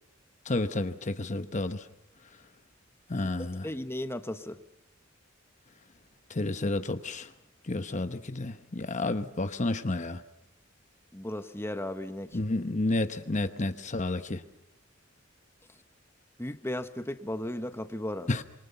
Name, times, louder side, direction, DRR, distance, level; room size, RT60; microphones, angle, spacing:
voice 1, 0.5-1.8 3.1-3.7 6.3-7.3 7.7-10.2 12.3-14.4 18.3-18.4, left 2 dB, 35° left, 1.0 m, -30 dB
voice 2, 3.1-4.6 11.1-12.4 16.4-18.3, left 1 dB, 10° left, 1.1 m, -36 dB
26.5 x 24.0 x 5.7 m
head